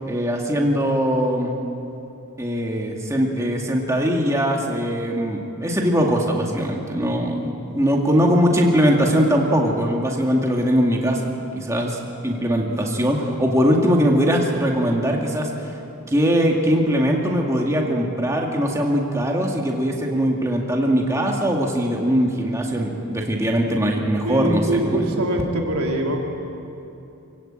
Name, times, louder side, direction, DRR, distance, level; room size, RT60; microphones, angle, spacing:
voice 1, 0.1-1.6 2.4-11.2 11.5-15.7 16.1-25.0, equal, 15° right, -1 dB, 2.2 m, -21 dB
voice 2, 24.2-26.3, right 1 dB, 75° right, 1 dB, 3.3 m, -23 dB
26.5 x 16.5 x 9.0 m, 2.8 s
head